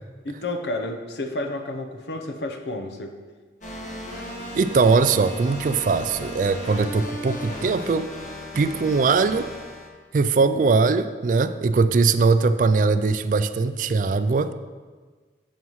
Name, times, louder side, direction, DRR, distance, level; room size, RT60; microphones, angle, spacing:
voice 1, 0.2-3.2, left 2 dB, 80° left, 5 dB, 0.8 m, -31 dB
sound 1, 3.6-9.9, left 1 dB, 45° left, 1.3 m, -35 dB
voice 2, 4.5-8.1 8.6-9.5 10.1-14.5, right 4 dB, 45° right, 11 dB, 0.3 m, -21 dB
9.2 x 7.2 x 3.1 m, 1.4 s
head